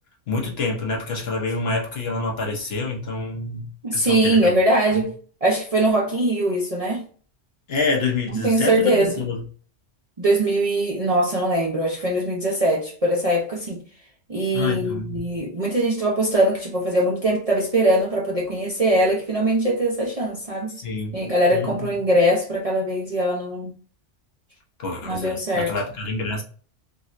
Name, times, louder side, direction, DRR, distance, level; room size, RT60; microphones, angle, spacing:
voice 1, 0.3-3.7 3.9-4.5 7.7-9.4 14.5-15.2 20.7-21.2 21.5-21.9 24.8-26.4, left 3 dB, 60° left, 1.0 m, -27 dB
voice 2, 3.8-5.1 5.4-7.0 8.3-9.2 10.2-13.8 14.3-20.8 21.1-23.7 25.0-25.7, right 1 dB, 40° right, 0.6 m, -21 dB
3.6 x 2.2 x 2.5 m
omnidirectional pair, 1.3 m